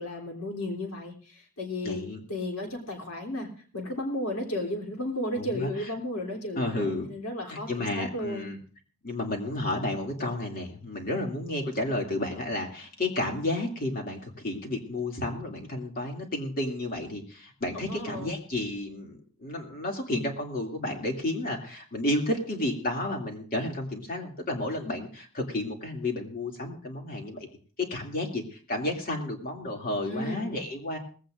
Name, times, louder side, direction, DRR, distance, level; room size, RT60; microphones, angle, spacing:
voice 1, 0.0-2.0 2.3-3.5 3.7-8.5 17.7-18.4 30.0-30.6, left 1 dB, 85° left, 1 dB, 3.4 m, -34 dB
voice 2, 1.8-2.2 5.4-5.9 6.6-7.1 7.5-8.6 9.0-27.5 27.8-31.0, left 1 dB, 40° left, 1 dB, 2.6 m, -32 dB
19.5 x 16.0 x 2.6 m, 0.42 s
head